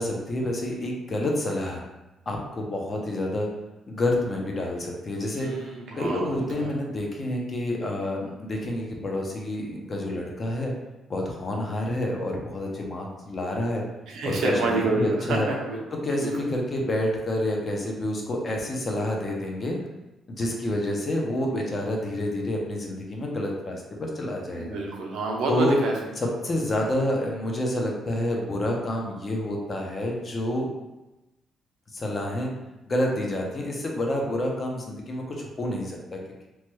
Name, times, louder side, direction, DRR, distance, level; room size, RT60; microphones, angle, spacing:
voice 1, 0.0-1.8 2.3-3.5 3.9-5.6 5.9-10.7 11.1-13.8 14.2-15.5 16.0-19.8 20.3-24.8 25.5-25.8 26.2-30.7 31.9-32.5 32.8-36.5, left 1 dB, 30° left, 0 dB, 0.5 m, -28 dB
voice 2, 5.3-6.7 14.1-15.8 16.2-16.3 24.5-25.9, right 3 dB, 80° right, 0 dB, 0.6 m, -28 dB
3.0 x 2.2 x 3.0 m, 1.0 s
cardioid pair, 165°, 0 cm